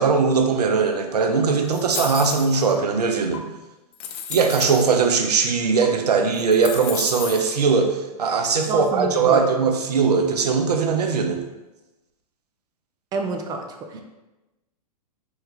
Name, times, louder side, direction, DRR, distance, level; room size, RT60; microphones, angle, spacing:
voice 1, 0.0-3.5 4.3-11.4 13.9-14.0, right 5 dB, 80° right, 5 dB, 0.5 m, -20 dB
sound 1, 1.7-2.7 3.3-3.4 3.9-4.9 5.8-5.9 6.3-7.5, left 7 dB, 45° left, 0.4 m, -33 dB
voice 2, 8.7-9.7 13.1-14.0, right 3 dB, 20° right, 4 dB, 0.3 m, -28 dB
3.5 x 2.2 x 3.2 m, 1.0 s
hypercardioid pair, 110°, 20 cm